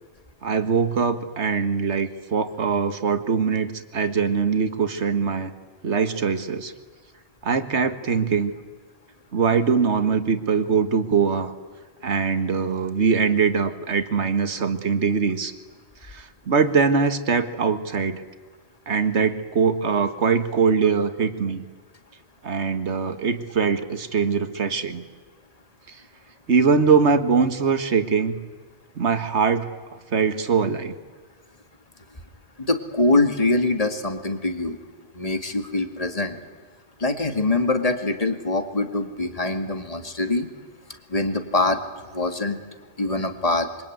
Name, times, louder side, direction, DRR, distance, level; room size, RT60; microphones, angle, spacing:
voice 1, 0.4-5.5 5.8-6.7 7.4-8.5 9.3-11.5 12.0-15.5 16.0-18.2 18.9-21.7 22.4-25.1 25.9-26.0 26.5-28.4 29.0-30.9, right 5 dB, 75° right, 9 dB, 1.9 m, -22 dB
voice 2, 32.6-34.8 35.1-36.4 37.0-40.5 41.1-42.6 43.0-43.7, left 2 dB, 30° left, 7 dB, 2.3 m, -24 dB
26.0 x 24.0 x 9.5 m, 1.4 s
omnidirectional pair, 1.2 m